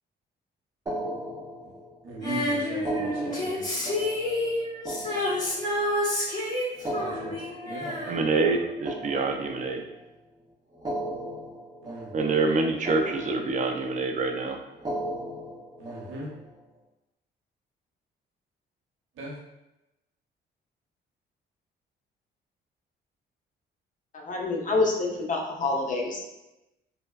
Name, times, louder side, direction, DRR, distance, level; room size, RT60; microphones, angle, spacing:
sound 1, 0.9-2.1 2.7-6.0 6.7-10.0 10.7-12.6 12.8-13.9 14.7-16.5, right 1 dB, 20° right, 0.8 m, -37 dB
voice 1, 2.0-3.9 6.9-7.3 7.6-8.2 11.8-12.1 15.8-16.3 19.1-19.3, right 1 dB, 85° right, -3 dB, 0.8 m, -39 dB
Female singing, 2.2-8.8 9.1-9.2, left 1 dB, 20° left, 1.1 m, -29 dB
voice 2, 8.1-9.8 12.1-14.6, right 3 dB, 40° right, 4 dB, 0.4 m, -26 dB
voice 3, 24.1-26.2, left 3 dB, 40° left, 0 dB, 0.6 m, -27 dB
3.3 x 2.1 x 2.3 m, 0.96 s
cardioid pair, 90°, 20 cm